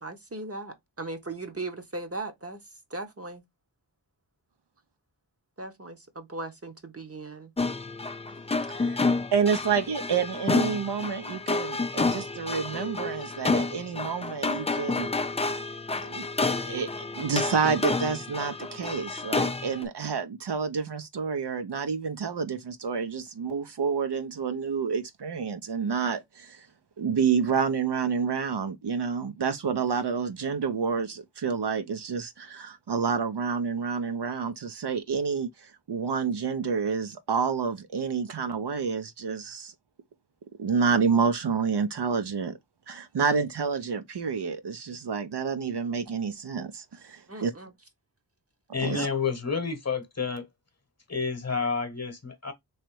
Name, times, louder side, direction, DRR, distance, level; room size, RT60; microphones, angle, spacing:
voice 1, 0.0-2.6 2.9-3.4 5.6-7.5 47.3-47.7 48.9-49.1, right 2 dB, 30° right, 0.9 m, -38 dB
sound 1, 7.6-19.8, left 3 dB, 15° left, 0.3 m, -29 dB
voice 2, 8.7-9.0 9.3-15.1 16.0-16.3 16.6-16.9 17.1-26.7 27.0-39.7 40.6-42.5 42.9-47.5 48.8-49.1, right 6 dB, 60° right, 0.6 m, -29 dB
voice 3, 48.7-50.4 51.1-52.5, left 5 dB, 35° left, 1.0 m, -29 dB
3.2 x 2.9 x 4.5 m
wide cardioid pair, 70°, 45 cm